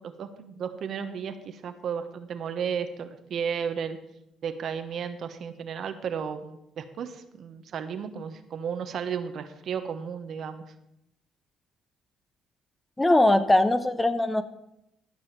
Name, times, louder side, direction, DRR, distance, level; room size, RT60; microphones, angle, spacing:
voice 1, 0.0-4.0 4.4-10.6, right 7 dB, 60° right, 9 dB, 1.1 m, -34 dB
voice 2, 13.0-14.4, left 1 dB, 15° left, 10 dB, 0.9 m, -21 dB
13.0 x 5.5 x 6.7 m, 0.80 s
supercardioid pair, 75°, 0 cm